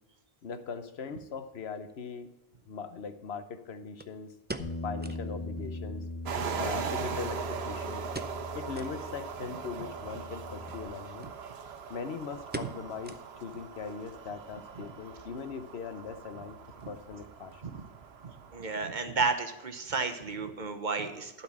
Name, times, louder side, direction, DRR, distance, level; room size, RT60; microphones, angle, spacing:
voice 1, 0.4-2.3 2.7-4.4 4.8-6.1 6.6-8.0 8.5-11.3 11.9-16.6 16.9-17.8, left 5 dB, 85° left, 9 dB, 1.1 m, -40 dB
sound 1, 1.9-2.0 4.0-5.3 5.6-5.7 6.0-6.1 6.8-7.6 8.1-8.5 8.7-9.0 9.5-9.6 10.6-10.8 11.2-11.3 11.6-12.0 12.5-13.6 13.9-14.0 14.6-14.9 15.2-15.3, right 2 dB, 20° right, 0.3 m, -43 dB
Bass guitar, 4.6-10.8, left 2 dB, 35° left, 1.9 m, -40 dB
sound 2, 6.3-18.7, right 6 dB, 85° right, 1.0 m, -40 dB
voice 2, 18.2-21.4, right 4 dB, 50° right, 7 dB, 1.0 m, -32 dB
12.0 x 4.4 x 7.1 m, 1.1 s
omnidirectional pair, 1.0 m